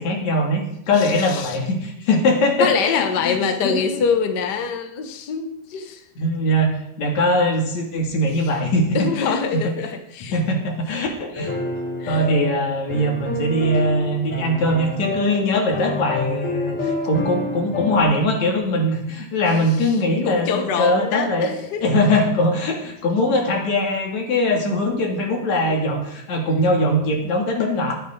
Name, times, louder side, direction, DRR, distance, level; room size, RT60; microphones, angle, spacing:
voice 1, 0.0-3.4 3.6-4.0 6.2-9.4 10.3-11.5 12.1-21.5 21.8-28.0, left 1 dB, 55° left, 1 dB, 3.6 m, -21 dB
voice 2, 1.0-1.6 2.6-6.1 8.7-10.4 12.0-12.2 19.8-20.0 20.2-21.9 25.7-25.8, left 6 dB, 90° left, 6 dB, 0.9 m, -24 dB
sound 1, 11.3-18.0, left 1 dB, 20° left, 5.7 m, -28 dB
20.5 x 9.4 x 3.9 m, 0.76 s
omnidirectional pair, 3.9 m